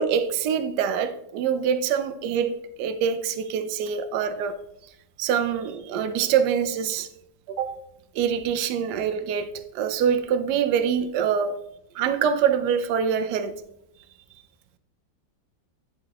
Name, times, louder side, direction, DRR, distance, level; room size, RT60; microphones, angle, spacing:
voice 1, 0.0-4.6 5.2-7.1 7.5-7.8 8.1-11.6 11.9-13.5, right 7 dB, 70° right, 1.1 m, -25 dB
10.5 x 4.1 x 2.8 m
omnidirectional pair, 2.0 m